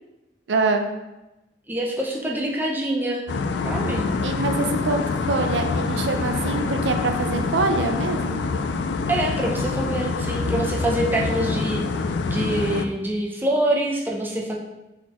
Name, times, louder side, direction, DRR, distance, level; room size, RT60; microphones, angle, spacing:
voice 1, 0.5-0.9 4.2-8.4, right 3 dB, 85° right, 6 dB, 0.5 m, -24 dB
voice 2, 1.7-3.2 3.6-4.1 9.1-11.8 12.3-14.6, right 1 dB, 10° right, -2 dB, 0.6 m, -25 dB
sound 1, 3.3-12.9, left 4 dB, 75° left, 0.3 m, -26 dB
4.0 x 4.0 x 3.0 m, 0.98 s
head